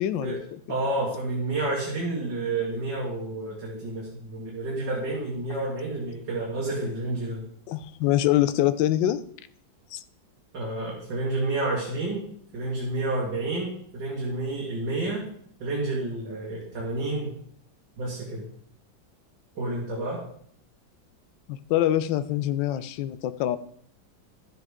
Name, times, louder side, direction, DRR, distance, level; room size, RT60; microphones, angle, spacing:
voice 1, 0.0-0.6 7.7-9.2 9.9-10.0 21.5-23.6, left 13 dB, 80° left, 13 dB, 1.3 m, -25 dB
voice 2, 0.7-7.4 10.5-12.2 12.5-15.3 15.6-17.3 18.0-18.4 19.6-20.2, right 2 dB, 70° right, -4 dB, 2.6 m, -30 dB
12.0 x 8.0 x 3.6 m, 0.63 s
omnidirectional pair, 2.0 m